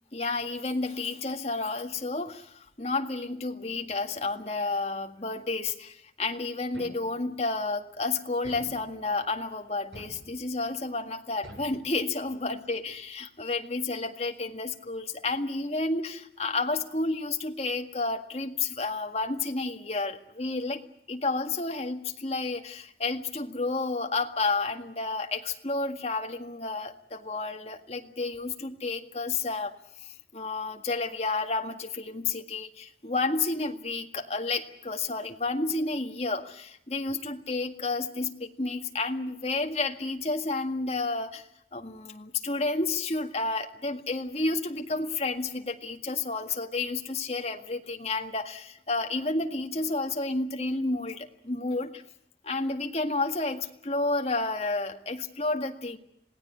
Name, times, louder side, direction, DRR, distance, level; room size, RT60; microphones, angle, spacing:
voice 1, 0.1-20.8 21.1-29.7 30.0-52.0 52.4-56.0, left 3 dB, 35° left, 5 dB, 1.9 m, -31 dB
sound 1, 6.7-7.4 8.4-9.3 9.9-10.7 11.4-12.4, right 1 dB, 85° right, 7.9 m, -49 dB
27.0 x 18.0 x 9.6 m, 0.75 s
head